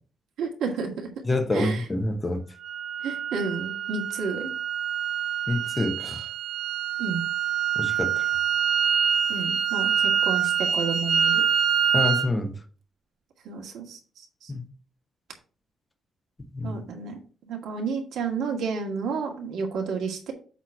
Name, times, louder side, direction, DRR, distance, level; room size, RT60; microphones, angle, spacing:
voice 1, 0.4-1.1 1.5-1.8 3.0-4.5 7.0-7.2 9.3-11.4 13.5-14.5 16.6-20.3, right 5 dB, 85° right, 2 dB, 2.0 m, -31 dB
voice 2, 1.2-2.4 5.5-6.3 7.7-8.2 11.9-12.6 14.5-14.6 16.4-16.8, left 2 dB, 15° left, 5 dB, 1.0 m, -27 dB
sound 1, 2.6-12.3, right 8 dB, 55° right, 0.6 m, -25 dB
8.1 x 3.1 x 5.9 m, 0.39 s
cardioid pair, 180°, 0 cm